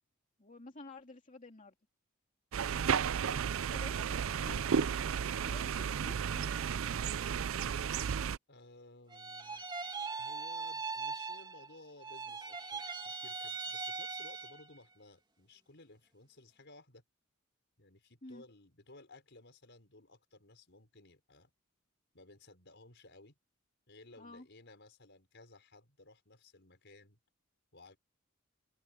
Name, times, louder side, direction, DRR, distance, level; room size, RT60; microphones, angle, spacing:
voice 1, 0.4-1.7 3.7-5.1 5.4-6.8 18.2-18.4 24.2-24.5, left 2 dB, 35° left, 2.5 m, -51 dB
sound 1, 2.5-8.4, right 7 dB, 65° right, 0.4 m, -33 dB
voice 2, 8.5-9.7 10.2-17.0 17.8-21.5 22.1-23.4 23.9-27.2 27.7-28.0, left 2 dB, 55° left, 5.6 m, -58 dB
sound 2, 9.1-11.7 12.0-14.7, right 4 dB, 20° right, 2.5 m, -40 dB
open air
head